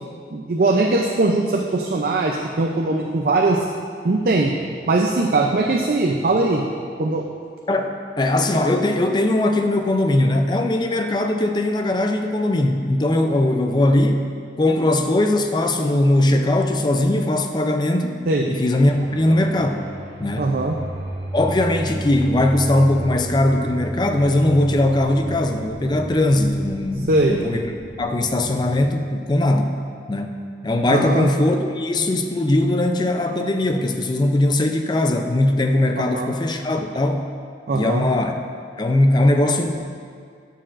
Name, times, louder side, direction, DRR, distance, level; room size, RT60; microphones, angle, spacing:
voice 1, 0.3-3.7 4.0-4.6 4.9-6.7 7.0-7.2 18.3-18.5 20.4-20.7 27.1-27.4 30.9-31.3 36.0-36.3 37.7-38.1, right 2 dB, 55° right, 1 dB, 0.5 m, -20 dB
voice 2, 7.7-14.2 14.6-18.2 18.5-19.9 20.2-20.6 21.3-27.6 28.0-29.7 30.1-37.3 37.7-38.3 38.8-39.9, left 1 dB, 25° left, 5 dB, 0.4 m, -20 dB
sound 1, 18.9-28.8, right 1 dB, 75° right, 1.4 m, -33 dB
11.5 x 6.7 x 2.5 m, 2.2 s
head